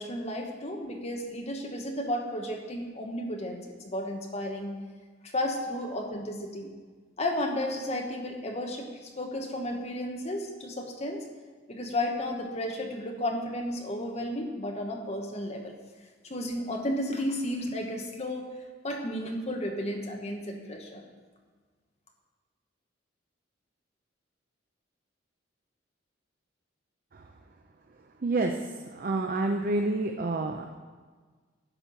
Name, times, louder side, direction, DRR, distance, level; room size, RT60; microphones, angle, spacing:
voice 1, 0.0-4.8 5.2-6.7 7.2-11.2 11.7-15.8 16.2-18.5 18.8-21.0, left 1 dB, 35° left, 2 dB, 1.2 m, -33 dB
voice 2, 28.2-28.6 28.9-30.8, right 2 dB, 45° right, 4 dB, 0.5 m, -28 dB
11.0 x 4.5 x 6.8 m, 1.5 s
head